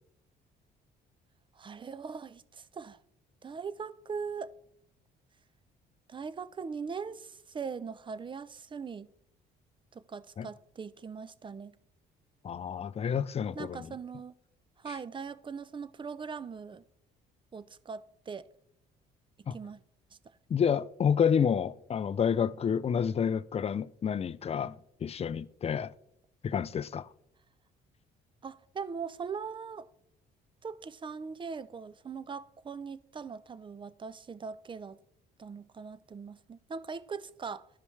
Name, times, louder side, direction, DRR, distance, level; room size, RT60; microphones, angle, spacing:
voice 1, 1.6-3.0 3.4-4.6 6.1-9.1 9.9-11.7 13.6-14.3 14.8-16.8 17.5-18.4 19.5-19.8 28.4-29.9 30.6-35.0 35.4-37.7, right 5 dB, 25° right, 0.5 m, -40 dB
voice 2, 12.4-13.9 19.5-19.6 20.5-24.8 25.0-25.9 26.4-27.1, left 7 dB, 30° left, 0.4 m, -29 dB
12.5 x 5.3 x 3.2 m
supercardioid pair, 70°, 20 cm